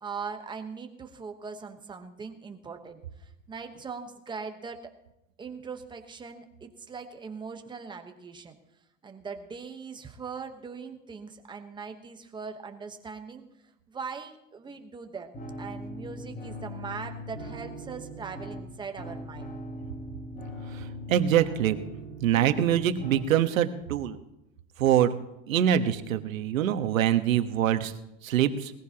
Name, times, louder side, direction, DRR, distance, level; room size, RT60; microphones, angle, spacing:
voice 1, 0.0-4.9 5.4-8.6 9.0-13.4 13.9-15.3 15.6-19.5, right 5 dB, 10° right, 6 dB, 1.1 m, -40 dB
sound 1, 15.3-23.3, equal, 20° left, 3.4 m, -40 dB
voice 2, 21.1-21.8 22.2-24.2 24.8-25.1 25.5-27.9 28.2-28.7, right 10 dB, 90° right, 9 dB, 1.3 m, -24 dB
20.0 x 15.0 x 2.9 m, 0.90 s
supercardioid pair, 145°, 39 cm